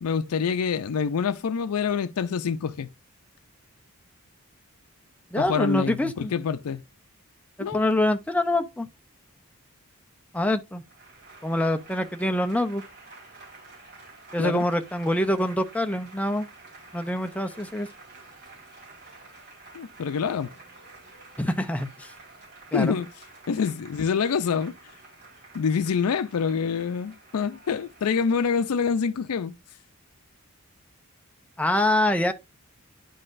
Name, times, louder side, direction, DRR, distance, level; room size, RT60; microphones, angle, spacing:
voice 1, 0.0-2.9 5.4-6.8 7.6-7.8 14.4-14.6 19.7-20.5 22.7-23.1 23.5-24.8 25.5-29.5, left 6 dB, 85° left, 0.4 m, -26 dB
voice 2, 5.3-6.3 7.6-8.9 10.3-10.8 11.4-12.8 14.3-16.5 16.9-17.9 21.4-22.1 22.7-23.0 31.6-32.3, left 1 dB, 5° left, 0.5 m, -25 dB
Applause / Crowd, 10.8-29.4, right 3 dB, 45° right, 4.3 m, -50 dB
11.0 x 3.9 x 2.5 m
head